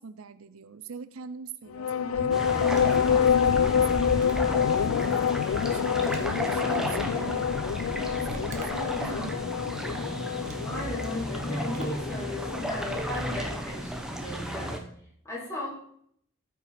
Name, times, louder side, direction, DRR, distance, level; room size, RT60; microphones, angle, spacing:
voice 1, 0.0-4.4 4.8-9.4 9.7-9.9, right 5 dB, 85° right, 14 dB, 0.6 m, -43 dB
sound 1, 1.7-13.6, left 7 dB, 90° left, 0.3 m, -27 dB
sound 2, 2.3-14.8, equal, 5° right, 0.9 m, -33 dB
sound 3, 2.6-3.2 4.2-4.6 6.0-7.0 8.3-9.0 9.8-9.9 10.4-10.8 11.7-12.1, right 3 dB, 35° right, 1.4 m, -48 dB
voice 2, 9.0-9.3 10.6-14.9 15.2-15.7, left 1 dB, 15° left, -5 dB, 3.7 m, -36 dB
13.5 x 5.8 x 5.1 m, 0.67 s
head